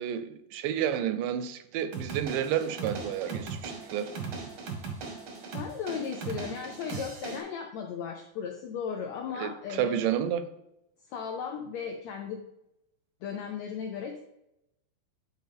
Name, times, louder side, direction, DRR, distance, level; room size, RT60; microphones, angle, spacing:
voice 1, 0.0-4.1 9.3-10.4, right 10 dB, 85° right, 2.2 m, -30 dB
sound 1, 1.9-7.4, right 5 dB, 65° right, 1.2 m, -38 dB
voice 2, 5.5-10.1 11.1-12.4 13.2-14.2, left 7 dB, 85° left, 1.5 m, -36 dB
9.2 x 4.3 x 3.5 m
omnidirectional pair, 3.8 m